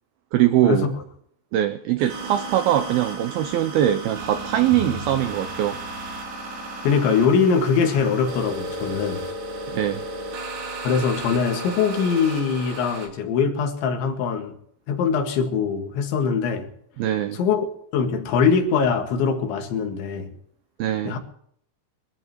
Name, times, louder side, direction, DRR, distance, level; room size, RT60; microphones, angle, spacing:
voice 1, 0.3-1.0 1.5-5.8 9.7-10.1 17.0-17.4 20.8-21.2, right 12 dB, 85° right, 2.1 m, -22 dB
sound 1, 2.0-13.1, right 2 dB, 60° right, 4.6 m, -34 dB
Drum, 4.7-7.1, left 2 dB, 45° left, 5.8 m, -40 dB
voice 2, 6.8-9.2 10.8-14.6 14.9-16.7 17.3-17.7 17.9-20.3 21.1-21.2, left 6 dB, 85° left, 4.2 m, -22 dB
23.5 x 14.5 x 3.1 m
omnidirectional pair, 5.2 m